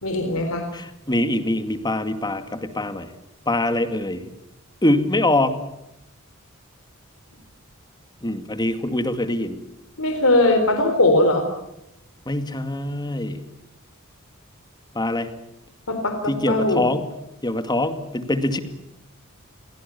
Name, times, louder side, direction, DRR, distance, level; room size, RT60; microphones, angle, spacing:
voice 1, 0.0-0.6 10.0-11.4 15.9-16.1 16.5-16.8, left 2 dB, 70° left, 5 dB, 3.9 m, -19 dB
voice 2, 0.7-3.1 3.5-4.2 4.8-5.6 8.2-9.6 12.3-13.4 15.0-15.3 16.3-17.1 17.4-18.6, left 1 dB, 20° left, 9 dB, 2.3 m, -23 dB
29.0 x 23.5 x 7.1 m, 0.85 s
head